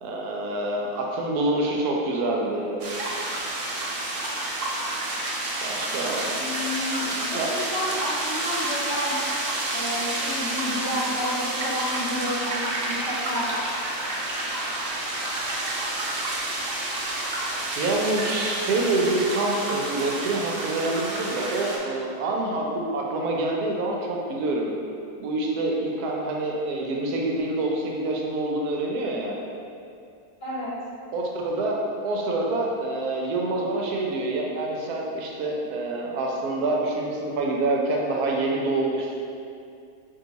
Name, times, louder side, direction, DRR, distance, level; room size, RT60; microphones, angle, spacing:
voice 1, 0.0-2.8 5.6-6.4 7.3-7.5 17.8-24.7 25.2-29.3 31.1-39.2, right 2 dB, 90° right, -1 dB, 1.1 m, -26 dB
sound 1, 2.8-21.8, right 2 dB, 65° right, 0.6 m, -29 dB
voice 2, 6.3-9.2 9.7-13.5 30.4-30.7, left 1 dB, 50° left, -7 dB, 0.9 m, -31 dB
3.7 x 2.5 x 3.9 m, 2.5 s
omnidirectional pair, 1.6 m